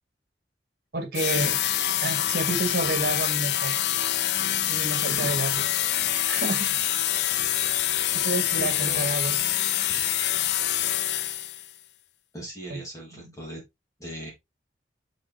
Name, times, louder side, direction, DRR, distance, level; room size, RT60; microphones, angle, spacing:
voice 1, 0.9-1.6 2.0-3.8 4.7-5.6 6.3-6.7 8.1-9.4 12.7-12.8, right 2 dB, 55° right, 1.9 m, -29 dB
sound 1, 1.1-11.7, left 12 dB, 65° left, 0.5 m, -26 dB
voice 2, 5.1-5.5 8.5-9.1 9.9-10.0 12.3-13.6 14.0-14.3, right 1 dB, 20° left, 2.9 m, -39 dB
7.6 x 5.2 x 3.4 m
head